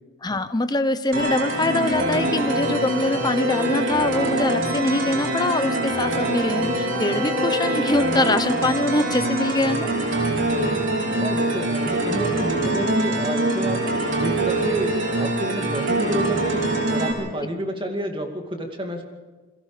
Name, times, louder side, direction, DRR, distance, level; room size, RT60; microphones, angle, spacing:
voice 1, 0.2-9.9, left 2 dB, 20° left, 10 dB, 0.9 m, -23 dB
sound 1, 1.1-17.1, right 1 dB, 60° right, 4.7 m, -24 dB
voice 2, 11.2-13.8 14.2-19.0, equal, 25° right, 3 dB, 2.4 m, -29 dB
29.5 x 21.5 x 5.1 m, 1.3 s
head